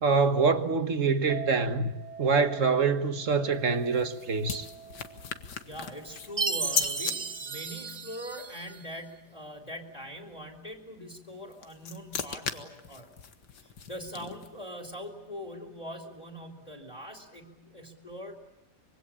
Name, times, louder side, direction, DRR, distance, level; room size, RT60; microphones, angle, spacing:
voice 1, 0.0-1.9 2.2-4.7, right 4 dB, 50° right, 1.7 m, -25 dB
Chink clink, 1.3-7.6, right 6 dB, 70° right, 3.1 m, -46 dB
sound 1, 3.5-7.2 11.3-14.7, left 7 dB, 90° left, 2.1 m, -37 dB
voice 2, 5.6-13.1 13.6-18.4, equal, 25° left, 3.0 m, -42 dB
Chime, 6.4-8.8, right 4 dB, 30° right, 0.8 m, -33 dB
25.5 x 23.0 x 8.7 m
omnidirectional pair, 1.7 m